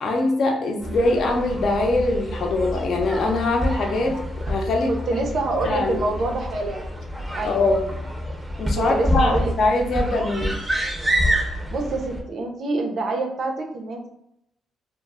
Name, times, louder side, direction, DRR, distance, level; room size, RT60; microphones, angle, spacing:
voice 1, 0.0-4.2 4.5-4.9 5.6-6.0 7.4-7.8 8.6-10.6, left 2 dB, 60° left, 2 dB, 0.5 m, -22 dB
sound 1, 0.8-12.2, equal, 10° right, 0.5 m, -28 dB
voice 2, 4.9-6.9 7.3-7.7 8.9-9.5 11.7-14.1, right 2 dB, 55° right, 2 dB, 0.5 m, -26 dB
2.1 x 2.0 x 3.4 m, 0.78 s
cardioid pair, 90°, 0 cm